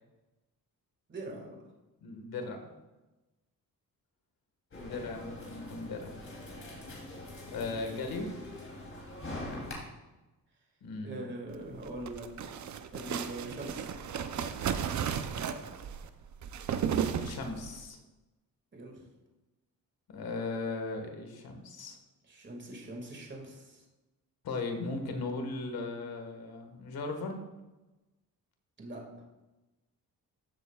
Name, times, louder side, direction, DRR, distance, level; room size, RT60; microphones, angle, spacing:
voice 1, 1.1-1.6 9.2-9.7 11.0-12.3 12.9-13.9 18.7-19.0 22.2-23.9 28.8-29.0, right 1 dB, 30° right, 0 dB, 2.1 m, -42 dB
voice 2, 2.0-2.7 4.7-6.2 7.5-8.3 10.8-11.3 17.1-18.0 20.1-22.0 24.4-27.4, left 3 dB, 80° left, 4 dB, 1.7 m, -37 dB
sound 1, 4.7-9.7, left 2 dB, 35° left, 3.1 m, -43 dB
sound 2, 11.7-17.8, right 8 dB, 55° right, 0.6 m, -34 dB
14.5 x 7.7 x 2.4 m, 1.1 s
cardioid pair, 115°, 35 cm